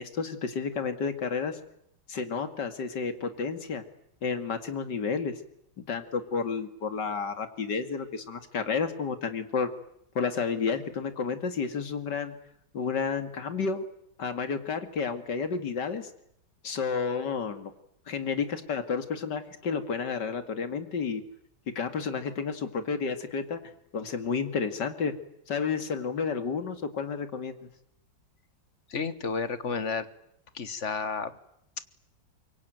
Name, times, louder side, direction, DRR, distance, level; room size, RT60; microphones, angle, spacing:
voice 1, 0.0-1.6 2.1-3.8 4.2-5.3 5.8-9.7 10.1-12.3 12.7-13.8 14.2-16.1 16.6-17.7 18.1-21.2 21.8-23.6 23.9-25.1 25.5-27.7, left 5 dB, 60° left, 9 dB, 2.7 m, -31 dB
voice 2, 28.9-30.1 30.5-31.3, left 5 dB, 40° left, 13 dB, 1.6 m, -31 dB
25.5 x 23.0 x 9.2 m, 0.76 s
omnidirectional pair, 2.1 m